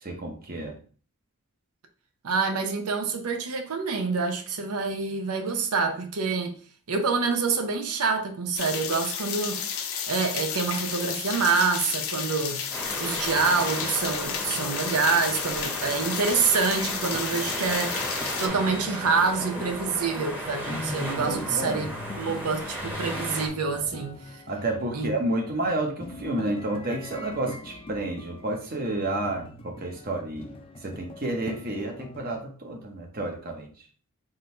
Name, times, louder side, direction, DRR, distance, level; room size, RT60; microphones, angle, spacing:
voice 1, 0.0-0.8 21.2-21.9 24.5-30.5 30.8-33.7, right 2 dB, 40° right, 0.8 m, -30 dB
voice 2, 2.2-6.5 6.9-9.6 10.1-12.6 13.0-18.0 18.4-21.9 22.2-24.2 24.9-25.1, right 4 dB, 90° right, 0.7 m, -26 dB
sound 1, 8.6-18.5, left 7 dB, 80° left, 0.6 m, -32 dB
sound 2, 12.7-23.5, equal, 10° right, 0.9 m, -34 dB
sound 3, 16.4-32.4, left 2 dB, 25° left, 0.4 m, -42 dB
3.8 x 2.6 x 4.3 m
head